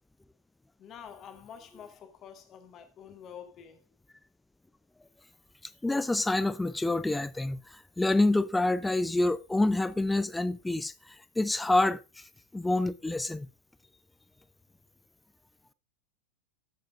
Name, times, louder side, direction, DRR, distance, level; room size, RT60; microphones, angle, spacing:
voice 1, 0.8-3.8, left 8 dB, 30° left, 1.5 m, -48 dB
voice 2, 5.8-7.6 8.0-10.9 11.4-12.0 12.5-13.5, left 2 dB, 5° left, 0.4 m, -27 dB
13.5 x 7.5 x 2.5 m
figure-of-eight pair, 90°, 0 cm